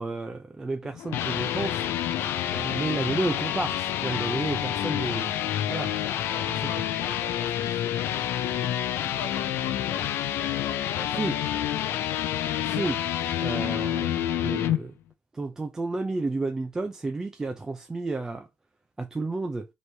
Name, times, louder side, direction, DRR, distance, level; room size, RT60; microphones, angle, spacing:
voice 1, 0.0-1.8 2.5-5.3 5.7-5.9 11.2-11.3 12.7-13.0 13.4-14.9 15.3-18.5 19.0-19.7, right 3 dB, 10° right, 0.4 m, -31 dB
sound 1, 0.8-14.8, left 11 dB, 60° left, 0.4 m, -28 dB
voice 2, 6.2-12.1, left 7 dB, 75° left, 1.2 m, -42 dB
4.3 x 3.1 x 3.3 m
cardioid pair, 180°, 4 cm